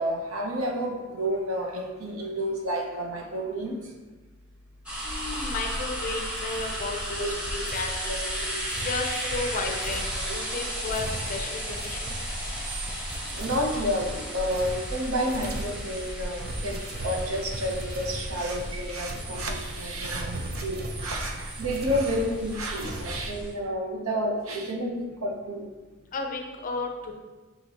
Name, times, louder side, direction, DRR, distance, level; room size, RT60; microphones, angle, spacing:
voice 1, 0.0-3.9 7.2-7.6 8.1-8.6 9.3-9.4 12.5-13.0 13.3-25.6, equal, 85° right, 1 dB, 0.7 m, -30 dB
sound 1, 4.9-23.5, equal, 5° right, 0.7 m, -34 dB
voice 2, 5.0-7.9 8.8-12.1 26.1-27.1, left 3 dB, 40° left, 3 dB, 0.4 m, -33 dB
sound 2, 5.5-6.2 6.5-6.8 7.6-23.2, right 1 dB, 50° right, 0.5 m, -40 dB
5.7 x 2.8 x 2.8 m, 1.2 s
head